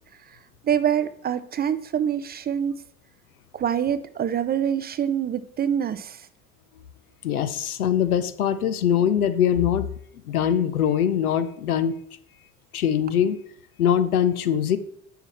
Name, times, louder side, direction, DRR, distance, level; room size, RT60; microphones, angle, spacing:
voice 1, 0.6-2.8 3.5-6.3, right 9 dB, 25° right, 14 dB, 0.4 m, -25 dB
voice 2, 7.2-9.9 10.2-12.0 12.7-13.4 13.8-14.8, left 9 dB, 80° left, 11 dB, 0.6 m, -22 dB
7.5 x 5.7 x 4.2 m, 0.67 s
figure-of-eight pair, 50°, 43 cm